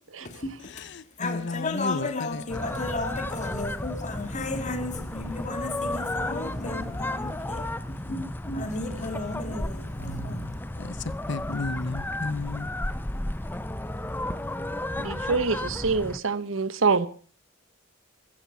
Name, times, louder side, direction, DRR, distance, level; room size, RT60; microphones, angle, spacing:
voice 1, 0.2-0.9 1.2-10.6, left 2 dB, 35° left, 1.9 m, -34 dB
voice 2, 0.8-2.6 10.8-10.9 11.3-12.7, left 3 dB, 60° left, 0.8 m, -33 dB
sound 1, 2.5-16.2, left 1 dB, 10° left, 0.7 m, -33 dB
voice 3, 15.0-17.1, right 4 dB, 80° right, 1.1 m, -25 dB
15.0 x 13.5 x 5.7 m
head